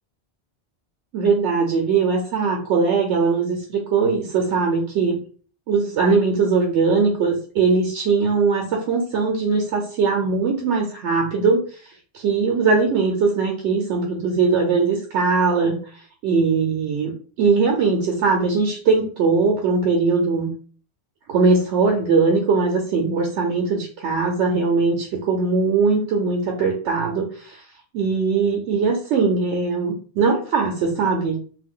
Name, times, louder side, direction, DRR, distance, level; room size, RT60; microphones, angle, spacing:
voice 1, 1.1-5.2 5.7-20.5 21.3-27.6 27.9-31.4, right 4 dB, 85° right, 1 dB, 0.9 m, -20 dB
2.5 x 2.3 x 3.6 m, 0.43 s
omnidirectional pair, 1.2 m